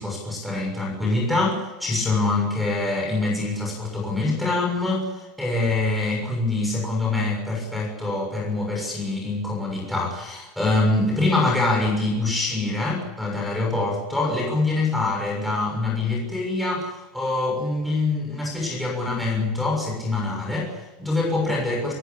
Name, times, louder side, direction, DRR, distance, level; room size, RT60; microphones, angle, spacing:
voice 1, 0.0-21.9, left 2 dB, ahead, -3 dB, 6.8 m, -25 dB
29.0 x 15.0 x 8.3 m, 1.1 s
cardioid pair, 160°, 0 cm